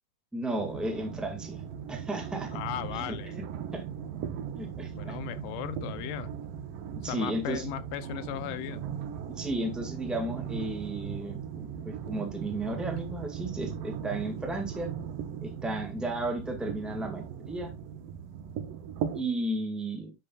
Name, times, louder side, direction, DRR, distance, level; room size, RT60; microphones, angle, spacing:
voice 1, 0.3-1.6 1.9-2.6 2.9-3.1 3.7-3.8 4.5-5.2 7.0-7.7 9.4-14.9 15.4-17.7 19.1-20.1, right 1 dB, ahead, 0.3 m, -34 dB
sound 1, 0.5-19.2, right 8 dB, 75° right, 2.4 m, -38 dB
voice 2, 2.5-3.4 4.9-6.3 7.0-8.8, left 13 dB, 80° left, 2.0 m, -37 dB
10.5 x 7.8 x 2.4 m
omnidirectional pair, 4.4 m